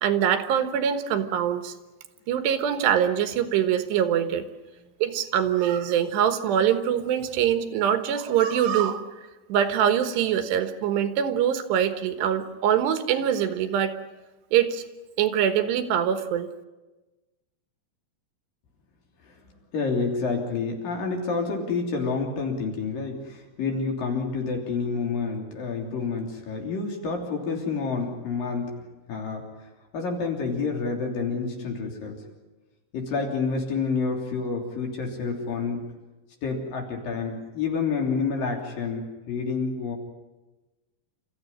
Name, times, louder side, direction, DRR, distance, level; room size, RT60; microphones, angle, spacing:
voice 1, 0.0-1.7 2.3-4.5 5.0-9.1 9.5-13.9 14.5-14.8 15.2-16.5, right 9 dB, 90° right, 9 dB, 3.5 m, -23 dB
voice 2, 19.7-28.7 29.1-29.4 29.9-32.2 32.9-35.8 36.4-40.0, left 4 dB, 55° left, 1 dB, 4.8 m, -28 dB
29.0 x 14.5 x 9.9 m, 1.2 s
omnidirectional pair, 4.8 m